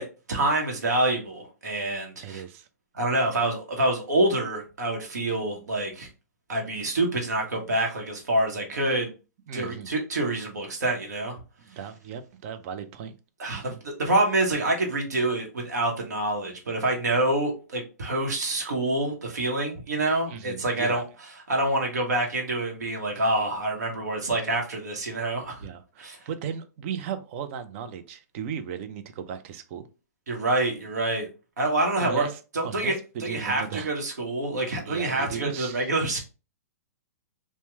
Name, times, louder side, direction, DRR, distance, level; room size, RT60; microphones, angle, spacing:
voice 1, 0.0-2.4 2.9-6.1 6.5-9.1 9.5-11.4 13.4-21.0 21.5-25.7 26.0-26.2 30.3-31.3 31.6-32.3 32.5-36.2, right 2 dB, 80° right, 0.9 m, -26 dB
voice 2, 2.2-2.7 9.5-10.0 11.6-13.1 13.5-13.8 20.3-21.0 25.6-29.9 31.9-33.9 34.9-35.9, right 8 dB, 50° right, 0.5 m, -36 dB
2.9 x 2.1 x 3.2 m
hypercardioid pair, 120°, 9 cm